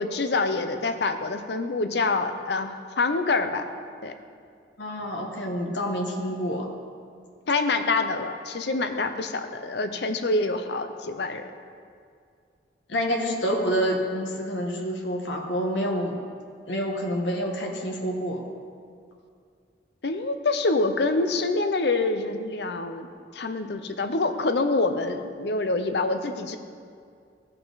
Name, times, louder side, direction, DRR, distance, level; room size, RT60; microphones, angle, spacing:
voice 1, 0.0-3.6 4.0-4.1 7.5-11.5 20.0-23.1 23.3-26.6, left 3 dB, 65° left, 7 dB, 0.7 m, -26 dB
voice 2, 4.8-6.7 12.9-16.2 16.7-18.4, equal, 90° left, 0 dB, 1.3 m, -28 dB
15.5 x 5.6 x 4.0 m, 2.3 s
head